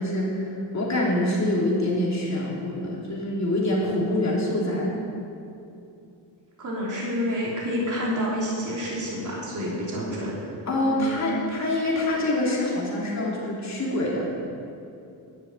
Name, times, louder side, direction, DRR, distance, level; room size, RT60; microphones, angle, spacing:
voice 1, 0.0-4.9 10.7-14.3, left 1 dB, 40° left, -4 dB, 3.2 m, -25 dB
voice 2, 4.4-5.0 6.6-10.5 10.8-11.4, equal, 45° right, -5 dB, 3.3 m, -29 dB
12.0 x 7.5 x 9.0 m, 2.7 s
wide cardioid pair, 160°, 44 cm